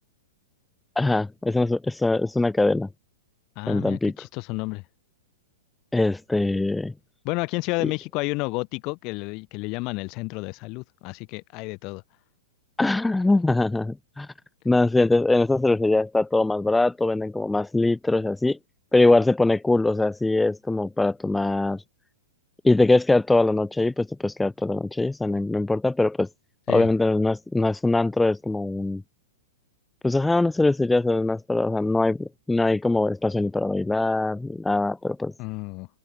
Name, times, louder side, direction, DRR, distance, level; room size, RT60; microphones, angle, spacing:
voice 1, 1.0-2.9 3.7-4.1 5.9-6.9 7.8-7.9 12.8-14.3 14.6-18.6 18.9-21.8 22.6-26.3 26.7-29.0 30.0-35.3, left 2 dB, 5° left, 1.2 m, -22 dB
voice 2, 3.6-4.8 7.2-12.0 26.7-26.9 35.4-35.9, left 26 dB, 40° left, 5.3 m, -31 dB
figure-of-eight pair, 105°, 0 cm